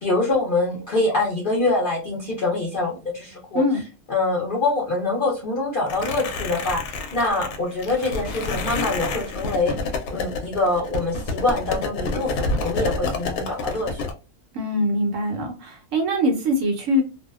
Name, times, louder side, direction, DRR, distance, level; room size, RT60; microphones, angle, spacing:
voice 1, 0.0-3.6 4.1-9.7 10.1-14.1, left 2 dB, 50° left, -4 dB, 0.6 m, -24 dB
sound 1, 5.9-14.1, left 3 dB, 75° left, 1.0 m, -29 dB
voice 2, 14.5-17.0, equal, 65° right, 3 dB, 0.9 m, -23 dB
2.6 x 2.1 x 2.3 m, 0.32 s
omnidirectional pair, 1.6 m